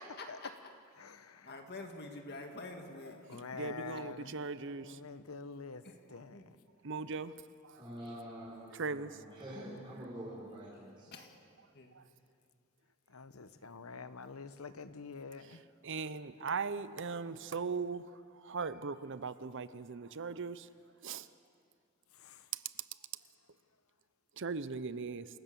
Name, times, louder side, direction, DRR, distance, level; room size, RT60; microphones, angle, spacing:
voice 1, 0.2-0.5 1.4-3.4 3.8-4.3 5.8-5.9 6.3-6.5 11.1-11.3 11.7-11.9, left 2 dB, 50° left, 3 dB, 1.9 m, -47 dB
voice 2, 1.0-1.5 3.0-5.8 6.1-6.4 13.1-15.6 22.2-22.4, left 4 dB, 90° left, 12 dB, 1.0 m, -47 dB
voice 3, 3.5-5.0 6.8-7.3 8.7-9.2 15.8-18.0 18.4-20.7 21.0-21.3 24.4-25.3, right 4 dB, 60° right, 14 dB, 0.7 m, -38 dB
voice 4, 7.7-11.1, equal, 25° right, -7 dB, 5.1 m, -46 dB
28.0 x 16.5 x 7.0 m, 2.3 s
head